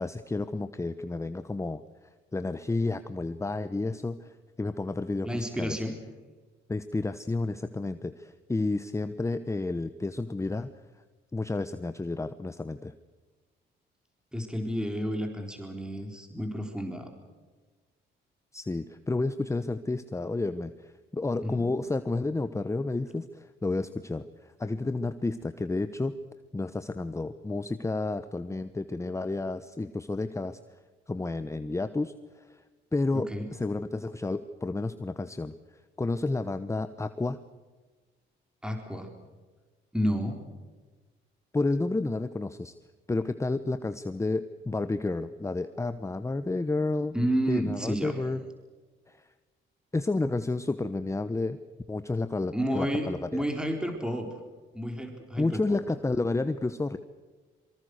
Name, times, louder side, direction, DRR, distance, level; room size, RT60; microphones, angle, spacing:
voice 1, 0.0-1.8 2.3-5.8 6.7-10.7 11.3-12.9 18.5-26.1 26.5-30.6 31.1-32.6 32.9-37.4 41.5-42.7 43.1-47.1 47.5-48.4 49.1-49.3 49.9-51.6 51.9-53.4 55.4-57.0, left 2 dB, 15° left, 11 dB, 1.0 m, -31 dB
voice 2, 5.2-6.0 14.3-17.1 21.4-21.7 33.1-33.5 38.6-39.1 39.9-40.4 47.1-48.2 52.5-54.3 54.7-55.8, equal, 5° right, 3 dB, 4.0 m, -31 dB
25.5 x 24.5 x 6.5 m, 1.3 s
cardioid pair, 90°, 20 cm